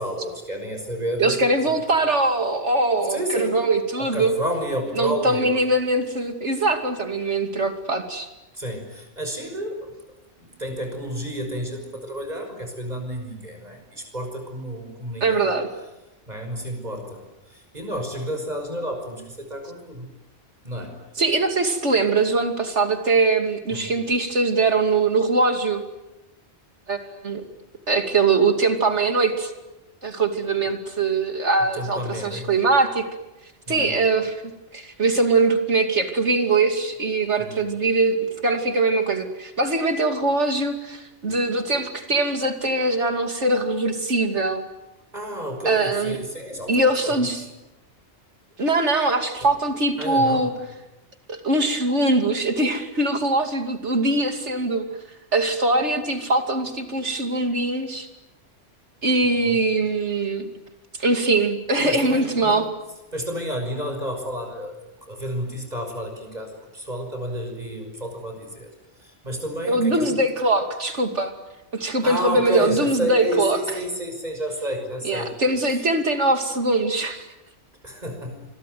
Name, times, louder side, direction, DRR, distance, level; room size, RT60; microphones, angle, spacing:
voice 1, 0.0-1.8 3.1-3.6 4.0-5.6 8.5-9.9 10.4-15.4 16.3-20.1 20.6-20.9 23.7-23.9 31.7-32.5 33.7-33.9 37.4-37.7 45.1-47.3 50.0-50.5 59.2-59.6 61.8-62.6 63.1-68.7 69.0-70.2 72.0-75.3 75.7-75.8 77.8-78.5, equal, 35° right, 4 dB, 6.2 m, -31 dB
voice 2, 1.2-4.3 4.9-8.3 15.2-15.7 21.2-25.8 26.9-27.4 27.9-29.5 30.0-33.1 33.7-34.4 34.7-44.6 45.6-46.2 46.7-47.4 48.6-50.5 51.3-54.9 55.3-58.1 59.0-60.5 61.0-62.7 69.7-71.3 71.7-73.6 75.0-77.3, right 2 dB, 75° right, 6 dB, 3.0 m, -22 dB
27.0 x 22.0 x 9.4 m, 0.99 s
omnidirectional pair, 1.2 m